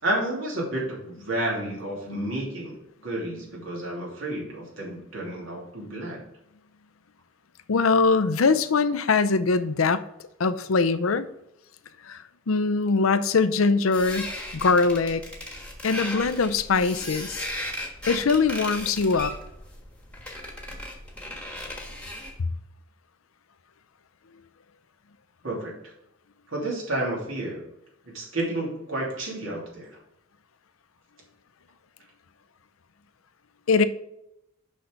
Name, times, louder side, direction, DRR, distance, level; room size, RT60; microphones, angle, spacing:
voice 1, 0.0-6.2 25.4-25.9 26.5-27.7 28.1-29.9, right 1 dB, 70° right, -3 dB, 3.0 m, -31 dB
voice 2, 7.7-10.0 10.4-11.3 12.0-15.2 15.8-17.5 18.1-19.3 33.7-33.9, left 4 dB, 90° left, 13 dB, 0.6 m, -22 dB
sound 1, 13.9-22.4, left 1 dB, 5° left, 1.3 m, -36 dB
6.4 x 5.8 x 5.2 m, 0.82 s
head